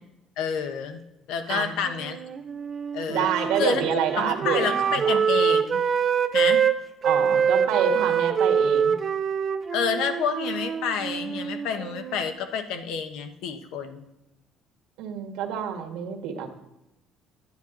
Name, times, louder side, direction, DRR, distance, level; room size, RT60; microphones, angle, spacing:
voice 1, 0.4-1.0 1.3-2.2 2.9-3.2 3.6-5.8 6.3-6.6 9.7-14.0, left 6 dB, 75° left, 8 dB, 1.1 m, -29 dB
Wind instrument woodwind instrument, 1.8-6.7 7.0-12.3, right 7 dB, 25° right, 0.4 m, -25 dB
voice 2, 3.1-5.2 7.0-9.0 15.0-16.5, right 8 dB, 80° right, 4 dB, 1.5 m, -27 dB
10.5 x 9.2 x 3.9 m, 0.95 s
cardioid pair, 175°, 0 cm